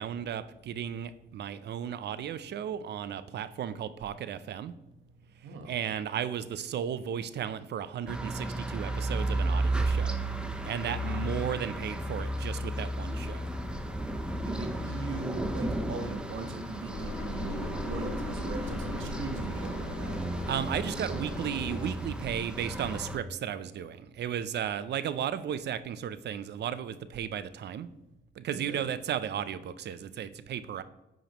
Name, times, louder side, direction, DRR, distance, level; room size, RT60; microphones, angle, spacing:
voice 1, 0.0-4.7 5.7-10.1 10.6-13.5 20.4-27.9 28.4-30.8, right 9 dB, 60° right, 14 dB, 0.5 m, -34 dB
sound 1, 8.1-23.2, right 1 dB, 5° right, 0.7 m, -34 dB
voice 2, 10.8-11.2 14.4-20.1 28.5-28.8, right 4 dB, 75° right, 5 dB, 1.2 m, -39 dB
Engine, 16.9-21.9, left 2 dB, 60° left, 2.1 m, -38 dB
9.1 x 5.0 x 3.0 m, 0.95 s
cardioid pair, 90°, 20 cm